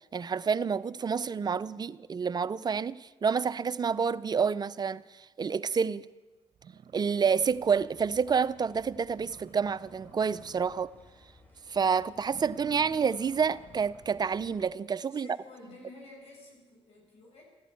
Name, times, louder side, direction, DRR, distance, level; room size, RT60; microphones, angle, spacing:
voice 1, 0.1-6.1 6.9-10.9 11.7-15.3, right 6 dB, 35° right, 0.5 m, -28 dB
sound 1, 6.1-6.2 6.6-8.0 8.3-8.4 8.8-8.9 9.1-11.1 11.4-11.7 12.2-14.2, right 7 dB, 60° right, 0.9 m, -53 dB
sound 2, 7.4-14.7, left 1 dB, 15° left, 3.4 m, -58 dB
voice 2, 15.1-17.4, left 2 dB, 70° left, 7.2 m, -51 dB
14.5 x 11.5 x 8.5 m
supercardioid pair, 65°, 11 cm